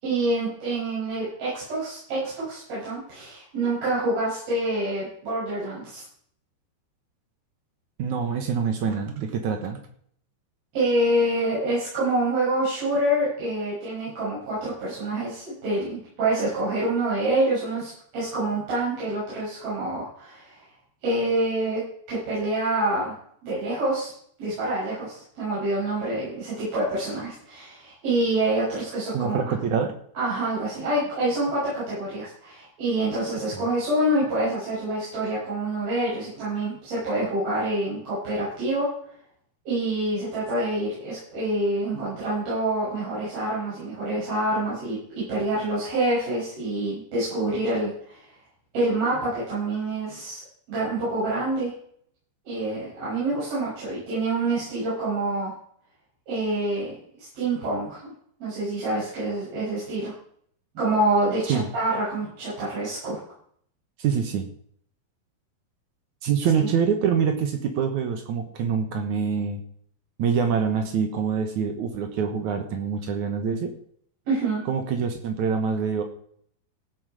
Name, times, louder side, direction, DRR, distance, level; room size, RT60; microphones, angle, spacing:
voice 1, 0.0-6.0 10.7-20.6 21.0-21.8 22.1-23.1 23.4-24.1 24.4-29.5 30.2-38.9 39.7-45.0 45.3-48.2 48.7-50.4 50.7-51.7 52.5-55.5 56.3-58.1 58.4-60.1 60.8-63.2 66.5-66.7 74.3-74.6, right 1 dB, 55° right, -10 dB, 8.7 m, -26 dB
voice 2, 8.0-9.8 29.1-30.0 33.5-33.6 61.5-61.7 64.0-64.5 66.2-69.6 70.2-73.7 74.7-76.0, right 6 dB, 75° right, 6 dB, 1.7 m, -25 dB
17.0 x 8.3 x 4.9 m, 0.63 s
omnidirectional pair, 5.3 m